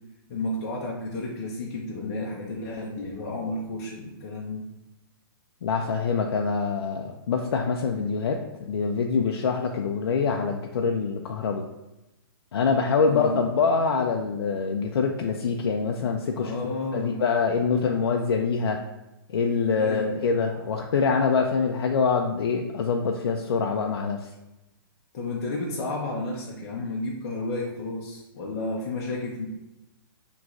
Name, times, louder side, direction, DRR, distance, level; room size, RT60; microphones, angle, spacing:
voice 1, 0.3-4.7 13.1-13.4 16.4-17.2 19.8-20.4 25.1-29.5, left 2 dB, 40° left, -4 dB, 0.7 m, -32 dB
voice 2, 5.6-11.6 12.5-18.8 19.3-24.3, left 5 dB, 80° left, 2 dB, 0.5 m, -25 dB
5.9 x 3.0 x 2.5 m, 0.94 s
hypercardioid pair, 165°, 13 cm